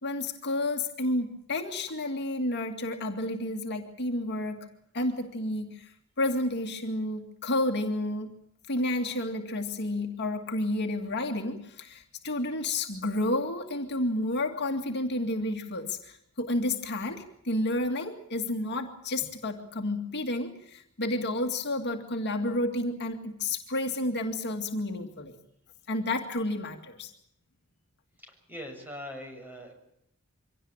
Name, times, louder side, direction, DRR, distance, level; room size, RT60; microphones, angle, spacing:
voice 1, 0.0-4.7 4.9-8.3 8.7-25.4 25.9-27.1, left 1 dB, 50° left, 4 dB, 2.2 m, -31 dB
voice 2, 28.2-29.7, equal, 10° right, 3 dB, 6.7 m, -42 dB
25.0 x 17.5 x 8.9 m, 0.75 s
head